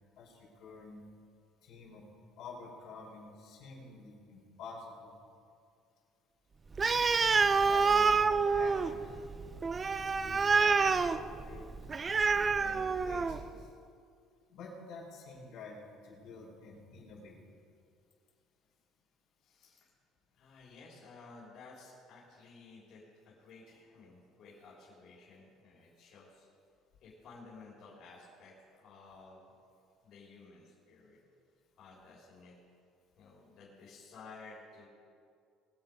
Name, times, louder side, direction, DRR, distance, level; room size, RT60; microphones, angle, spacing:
voice 1, 0.2-1.1 1.6-2.0 2.4-5.1 6.9-9.1 10.1-11.8 12.3-13.7 14.5-17.4, left 3 dB, 65° left, -3 dB, 4.3 m, -49 dB
Animal, 6.7-13.5, right 4 dB, 20° right, 0.4 m, -28 dB
voice 2, 19.4-19.9 20.3-26.5 27.0-29.5 30.0-31.2 31.8-32.6 33.2-34.9, left 3 dB, 50° left, -5 dB, 3.7 m, -54 dB
22.0 x 7.8 x 5.2 m, 2.3 s
cardioid pair, 150°, 0 cm